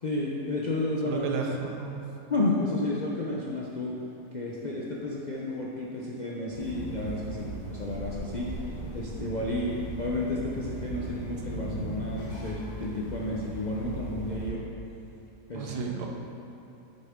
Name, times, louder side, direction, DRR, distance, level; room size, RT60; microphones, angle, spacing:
voice 1, 0.0-1.3 2.3-4.0 4.3-14.7 15.5-15.7, left 2 dB, 70° left, -5 dB, 0.4 m, -32 dB
voice 2, 1.0-2.0 15.5-16.1, right 5 dB, 75° right, 1 dB, 1.4 m, -32 dB
sound 1, 6.5-14.5, right 2 dB, 55° left, 2.1 m, -38 dB
8.4 x 6.4 x 3.6 m, 2.8 s
omnidirectional pair, 1.8 m